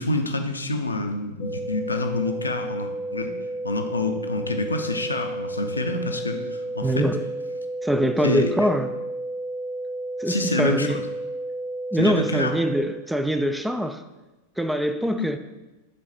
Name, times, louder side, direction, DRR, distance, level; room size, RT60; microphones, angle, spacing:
voice 1, 0.0-3.3 3.6-7.0 8.2-8.7 10.3-11.0 11.9-12.5 15.2-15.3, left 2 dB, 80° left, 5 dB, 0.6 m, -27 dB
sound 1, 1.4-12.8, right 1 dB, 30° left, 0.8 m, -32 dB
voice 2, 6.8-7.2 7.8-8.9 10.2-11.0 11.9-14.0 14.6-15.4, equal, 5° right, 9 dB, 0.4 m, -23 dB
7.3 x 3.9 x 4.2 m, 1.1 s
figure-of-eight pair, 90°, 0 cm